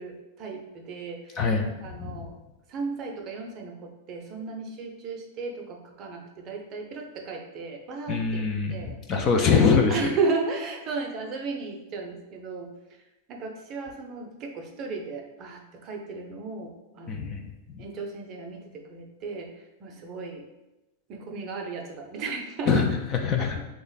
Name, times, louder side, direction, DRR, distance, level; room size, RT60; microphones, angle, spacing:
voice 1, 0.0-2.4 2.7-9.0 9.4-12.7 13.3-17.4 17.8-20.5 21.1-22.8, right 4 dB, 35° right, 2 dB, 0.5 m, -35 dB
voice 2, 1.4-1.7 2.0-2.3 8.1-9.9 17.1-17.8 22.7-23.6, left 5 dB, 30° left, 5 dB, 0.4 m, -24 dB
3.3 x 2.1 x 3.9 m, 0.98 s
supercardioid pair, 135°, 0 cm